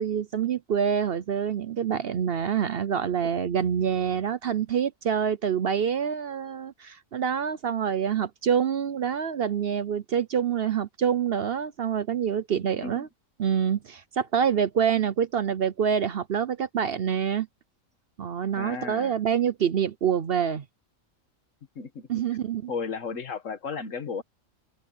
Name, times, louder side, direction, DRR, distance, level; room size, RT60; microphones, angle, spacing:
voice 1, 0.0-13.1 13.4-17.5 18.2-20.6 22.1-22.7, right 8 dB, 55° right, 0.8 m, -26 dB
voice 2, 18.6-19.1 21.8-22.2 22.7-24.2, left 5 dB, 70° left, 1.8 m, -34 dB
omnidirectional pair, 1.4 m